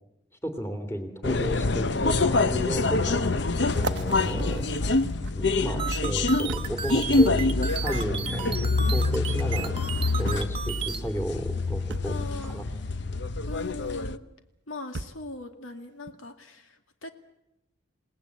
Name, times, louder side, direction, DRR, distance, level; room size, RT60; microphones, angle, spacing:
voice 1, 0.4-3.3 3.7-4.6 5.3-9.8 10.2-12.2 12.4-12.6, equal, 10° left, 6 dB, 2.7 m, -33 dB
sound 1, 1.0-1.1 2.1-2.3 2.9-3.0 3.7-5.6 6.5-6.8 8.0-8.2 9.4-9.5 10.3-10.6 11.9-12.1 13.8-13.9 14.9-15.3 16.1-16.2, right 2 dB, 55° right, 0.8 m, -36 dB
sound 2, 1.2-14.2, left 3 dB, 55° left, 0.8 m, -26 dB
voice 2, 4.2-4.6 5.6-6.2 12.0-12.9 13.5-14.2 14.7-17.1, left 2 dB, 80° left, 6 dB, 2.3 m, -40 dB
sound 3, 5.8-11.0, right 7 dB, 25° right, 1.3 m, -34 dB
28.5 x 19.0 x 8.4 m, 0.89 s
head